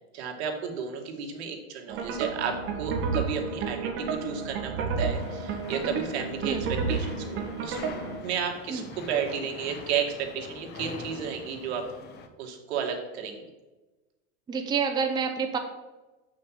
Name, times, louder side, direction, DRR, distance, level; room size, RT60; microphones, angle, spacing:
voice 1, 0.1-7.8 8.2-11.9 12.4-13.4, right 7 dB, 75° right, 2 dB, 2.2 m, -32 dB
sound 1, 1.9-8.2, right 5 dB, 35° right, 1.7 m, -31 dB
sound 2, 5.1-12.3, left 4 dB, 30° left, 1.0 m, -43 dB
voice 2, 14.5-15.6, right 6 dB, 15° right, 5 dB, 0.7 m, -28 dB
7.2 x 6.2 x 7.6 m, 1.1 s
supercardioid pair, 150°, 33 cm